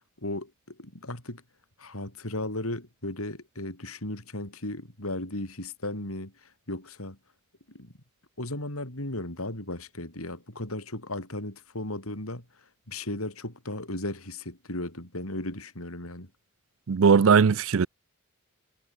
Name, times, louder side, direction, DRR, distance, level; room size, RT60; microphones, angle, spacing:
voice 1, 0.2-1.4 1.8-7.2 7.7-7.9 8.4-12.4 12.9-16.3, left 1 dB, 80° left, 7.0 m, -36 dB
voice 2, 16.9-17.9, right 6 dB, 65° right, 0.5 m, -19 dB
head